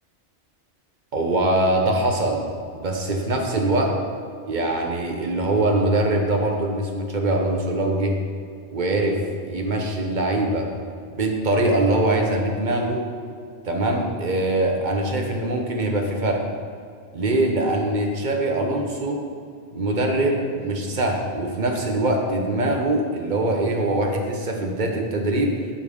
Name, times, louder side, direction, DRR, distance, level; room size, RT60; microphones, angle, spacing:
voice 1, 1.1-2.4 2.7-4.0 4.5-8.2 8.7-10.7 11.1-13.1 13.6-16.4 17.1-19.2 19.7-25.5, right 1 dB, 45° right, 2 dB, 1.1 m, -23 dB
10.0 x 4.5 x 5.3 m, 2.2 s
omnidirectional pair, 1.2 m